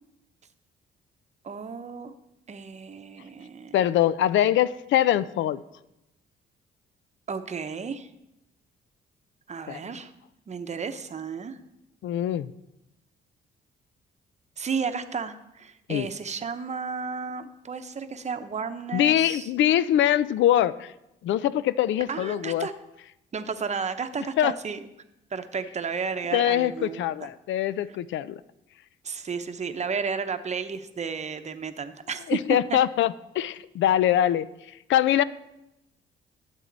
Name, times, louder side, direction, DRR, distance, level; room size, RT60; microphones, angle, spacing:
voice 1, 1.4-2.1 2.5-3.8 7.3-8.1 9.5-10.1 10.5-11.6 14.6-19.5 22.1-22.7 23.3-24.8 25.3-27.3 27.9-28.0 29.0-32.8, right 5 dB, 35° right, 9 dB, 0.8 m, -33 dB
voice 2, 3.7-5.6 9.7-9.8 12.0-12.5 15.9-16.1 18.9-20.9 21.2-22.7 24.4-24.5 26.3-28.4 32.3-34.5 34.9-35.2, left 11 dB, 70° left, 17 dB, 0.5 m, -23 dB
12.5 x 7.5 x 4.0 m, 0.89 s
cardioid pair, 90°, 20 cm